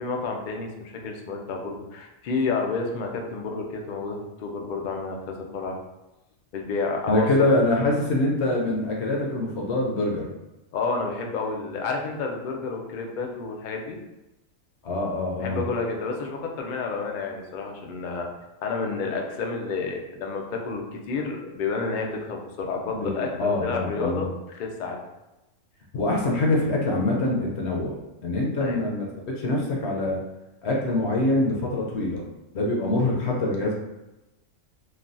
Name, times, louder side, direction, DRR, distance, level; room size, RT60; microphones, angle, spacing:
voice 1, 0.0-5.8 6.5-7.5 10.7-14.0 15.4-18.3 18.6-25.0 28.6-28.8, left 4 dB, 90° left, 1 dB, 0.4 m, -30 dB
voice 2, 7.1-10.3 14.8-15.6 22.9-24.3 25.9-28.0 28.2-30.2 30.6-32.2 32.5-33.7, left 2 dB, 65° left, -2 dB, 0.8 m, -24 dB
3.2 x 2.2 x 2.5 m, 0.99 s
omnidirectional pair, 1.4 m